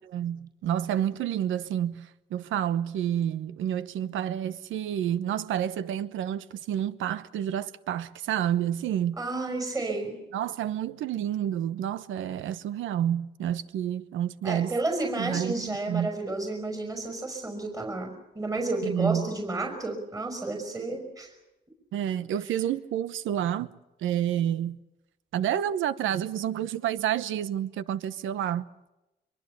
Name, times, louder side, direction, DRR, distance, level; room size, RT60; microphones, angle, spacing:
voice 1, 0.0-9.2 10.3-14.7 15.2-16.1 18.8-19.3 21.9-23.7 24.0-24.8 25.3-28.6, right 10 dB, 80° right, 1.0 m, -29 dB
voice 2, 9.2-10.2 14.4-21.3, right 2 dB, 15° right, 5.4 m, -31 dB
24.5 x 23.5 x 6.8 m
cardioid pair, 90°, 20 cm